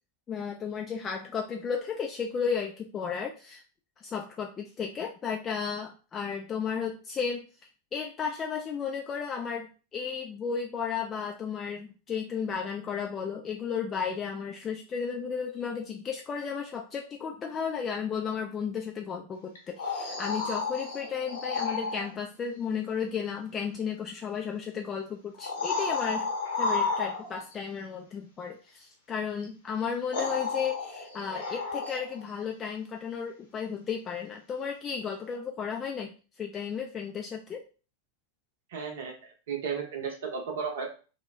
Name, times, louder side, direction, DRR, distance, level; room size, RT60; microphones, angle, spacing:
voice 1, 0.3-3.6 4.0-7.5 7.9-26.3 26.6-37.6, left 6 dB, 25° left, 1 dB, 0.3 m, -34 dB
sound 1, 19.6-22.1 24.0-24.1 25.3-27.5 29.4-29.5 30.1-32.2 35.3-35.4, left 4 dB, 60° left, 0.7 m, -32 dB
voice 2, 38.7-39.1 39.5-40.9, right 6 dB, 55° right, 2 dB, 0.7 m, -34 dB
2.2 x 2.0 x 3.1 m, 0.36 s
figure-of-eight pair, 90°, 0 cm